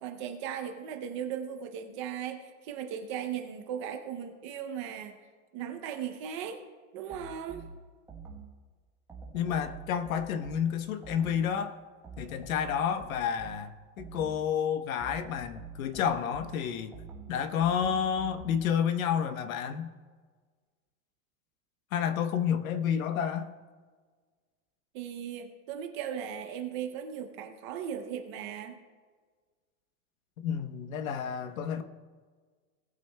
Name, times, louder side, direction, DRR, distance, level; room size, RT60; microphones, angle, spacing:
voice 1, 0.0-5.2 5.5-6.6 6.9-7.6 24.9-28.8, right 8 dB, 25° right, 0.5 m, -37 dB
sound 1, 7.1-8.6 9.1-11.6 12.0-14.5 15.0-18.8, right 3 dB, 5° right, 1.0 m, -47 dB
voice 2, 9.3-11.8 12.2-16.9 17.3-19.9 21.9-23.5 30.4-31.8, left 8 dB, 85° left, 1.0 m, -30 dB
19.5 x 8.5 x 2.2 m
supercardioid pair, 175°, 40 cm